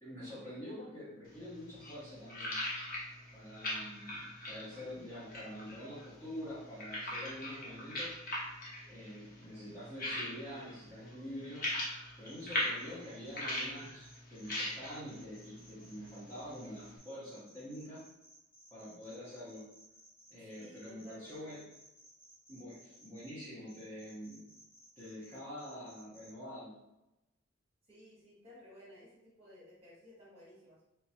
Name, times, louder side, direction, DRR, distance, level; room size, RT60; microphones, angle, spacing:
voice 1, 0.0-2.6 3.3-8.2 8.9-11.7 12.2-18.0 18.7-19.7 20.3-21.7 22.5-24.5 25.0-26.8, equal, 15° left, -10 dB, 1.2 m, -46 dB
sound 1, 1.3-17.0, left 1 dB, 45° left, 0.9 m, -41 dB
sound 2, 12.3-26.3, equal, 70° left, 1.3 m, -60 dB
voice 2, 20.4-21.6 27.9-30.8, equal, 30° right, -8 dB, 1.5 m, -56 dB
3.3 x 3.0 x 2.9 m, 0.93 s
head